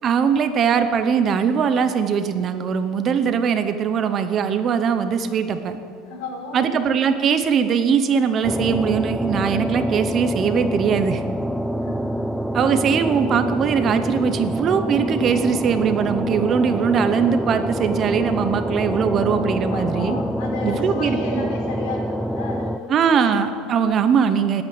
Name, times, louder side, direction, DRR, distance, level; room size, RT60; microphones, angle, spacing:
voice 1, 0.0-5.8 6.5-11.2 12.5-20.2 20.6-21.5 22.9-24.6, right 7 dB, 30° right, 9 dB, 0.9 m, -21 dB
voice 2, 6.1-6.8 11.8-12.3 19.7-23.7, left 3 dB, 85° left, 2 dB, 3.8 m, -34 dB
sound 1, 8.4-22.8, equal, ahead, 0.4 m, -26 dB
20.0 x 8.8 x 8.1 m, 2.4 s
cardioid pair, 160°, 0 cm